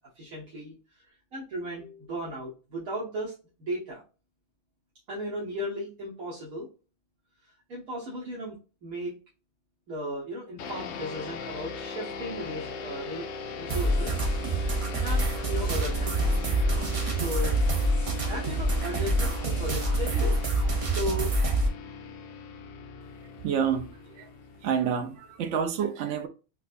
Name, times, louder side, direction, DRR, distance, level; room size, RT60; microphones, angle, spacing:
voice 1, 0.1-3.3 3.6-4.0 5.1-6.7 7.7-9.1 9.9-13.3 13.6-14.2 15.0-16.5 17.1-17.6 18.3-20.4 20.8-21.3, equal, 80° right, 1.5 m, -36 dB
sound 1, 10.6-25.4, left 5 dB, 65° left, 0.7 m, -39 dB
sound 2, 13.7-21.7, right 1 dB, 45° right, 0.4 m, -26 dB
voice 2, 23.4-24.3 24.6-26.3, right 7 dB, 65° right, 0.9 m, -28 dB
4.5 x 2.3 x 2.5 m
omnidirectional pair, 1.4 m